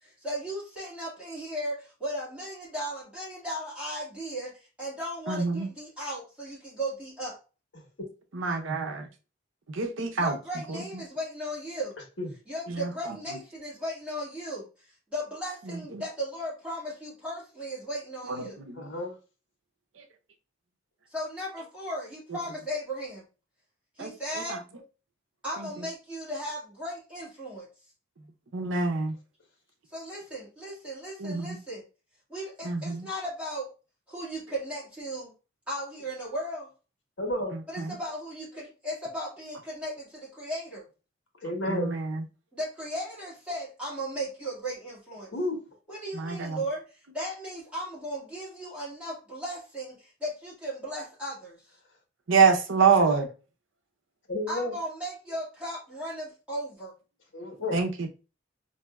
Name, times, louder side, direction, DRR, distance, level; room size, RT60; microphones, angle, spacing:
voice 1, 0.0-4.5 4.8-7.4 10.1-11.9 12.5-14.7 15.1-18.6 21.1-23.2 24.0-24.6 25.4-27.7 29.9-31.8 32.3-33.7 34.1-35.3 35.7-36.7 37.7-40.8 42.5-45.3 45.9-46.8 47.1-51.6 54.5-56.9, equal, 5° right, 1.9 m, -36 dB
voice 2, 5.3-5.7 8.3-9.1 9.7-10.4 10.7-10.8 12.7-12.9 15.9-16.0 18.3-18.8 24.0-24.6 25.6-25.7 28.5-29.2 31.2-31.6 32.6-33.1 37.8-38.0 41.7-42.2 46.1-46.6 52.3-53.3 57.7-58.1, right 5 dB, 85° right, 0.6 m, -26 dB
voice 3, 18.7-19.2 37.2-37.5 41.4-41.9 45.3-45.6 54.3-54.7 57.3-57.8, left 1 dB, 75° left, 1.2 m, -31 dB
4.1 x 2.7 x 2.3 m
head